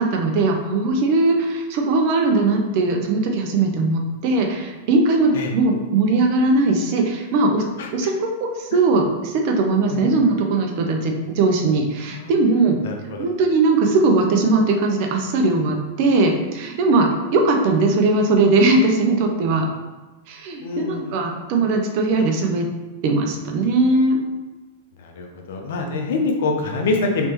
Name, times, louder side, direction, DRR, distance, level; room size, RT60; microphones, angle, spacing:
voice 1, 0.0-7.7 7.9-12.8 13.2-19.7 20.3-22.7 23.0-24.2, right 3 dB, 55° right, 3 dB, 0.6 m, -19 dB
voice 2, 12.8-13.3 20.6-21.2 25.0-27.3, left 3 dB, 70° left, 3 dB, 0.6 m, -25 dB
3.3 x 2.9 x 3.0 m, 1.1 s
hypercardioid pair, 115°, 0 cm